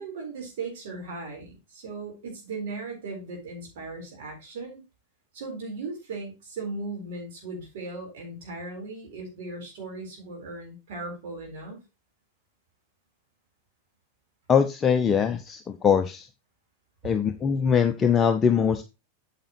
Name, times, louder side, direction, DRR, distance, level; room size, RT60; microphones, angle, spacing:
voice 1, 0.0-4.8 5.3-11.8, right 3 dB, 55° right, 0 dB, 4.0 m, -37 dB
voice 2, 14.5-16.3 17.0-18.8, left 7 dB, 20° left, 8 dB, 0.6 m, -22 dB
8.9 x 7.4 x 3.0 m, 0.26 s
figure-of-eight pair, 90°, 0 cm